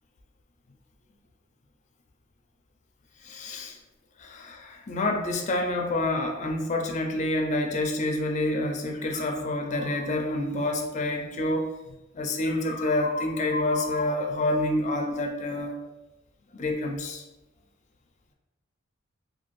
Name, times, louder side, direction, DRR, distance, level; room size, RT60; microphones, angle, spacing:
voice 1, 3.2-3.8 4.2-11.7 12.1-15.8 16.5-17.2, left 2 dB, 35° left, 2 dB, 0.4 m, -28 dB
2.7 x 2.3 x 3.0 m, 1.0 s
head